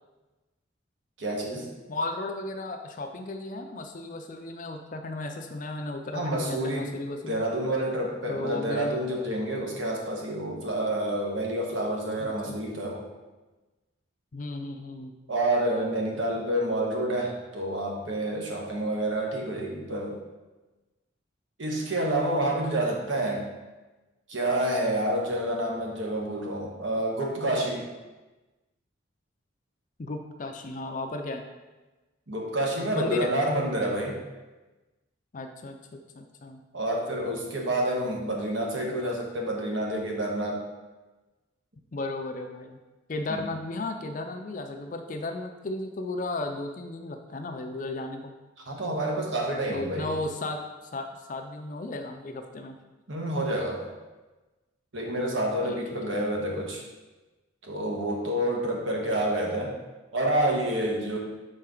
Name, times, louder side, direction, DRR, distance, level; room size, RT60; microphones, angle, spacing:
voice 1, 1.2-1.7 6.1-6.9 7.2-13.0 15.3-20.2 21.6-23.5 24.3-27.9 32.3-34.2 36.7-40.6 43.3-43.5 48.6-50.1 53.1-53.9 54.9-56.8 57.6-59.7 60.1-61.2, right 1 dB, 70° right, -1 dB, 1.3 m, -28 dB
voice 2, 1.9-7.4 8.3-9.0 12.2-12.6 14.3-15.1 30.0-31.4 32.9-33.3 35.3-36.6 41.9-42.8 43.1-48.3 49.7-52.8 55.6-55.8, left 2 dB, 40° left, 5 dB, 0.4 m, -35 dB
6.8 x 4.3 x 3.8 m, 1.1 s
head